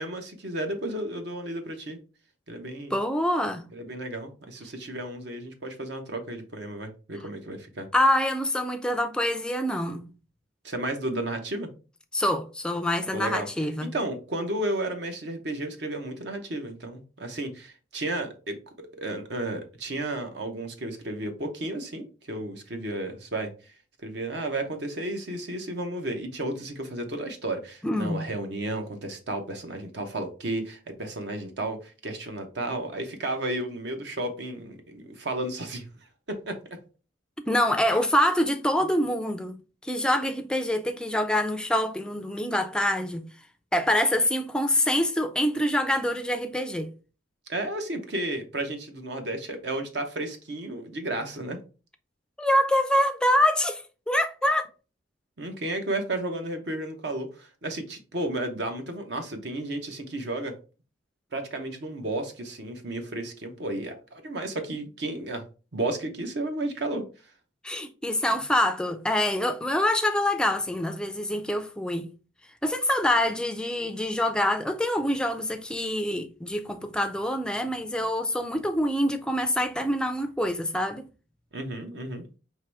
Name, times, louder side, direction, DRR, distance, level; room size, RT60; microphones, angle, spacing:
voice 1, 0.0-2.0 2.5-2.9 3.7-7.9 10.6-11.7 13.1-13.5 13.9-18.6 19.0-23.5 24.0-35.8 36.3-36.6 47.5-51.6 55.4-60.6 61.3-65.4 65.7-67.0 81.5-82.2, right 1 dB, 60° right, 0.8 m, -33 dB
voice 2, 2.9-3.7 7.9-10.0 12.1-13.9 27.8-28.2 37.5-39.6 39.8-43.2 43.7-46.9 52.4-54.7 67.6-72.1 72.6-81.1, left 1 dB, 5° left, 0.4 m, -25 dB
4.7 x 3.0 x 3.3 m
head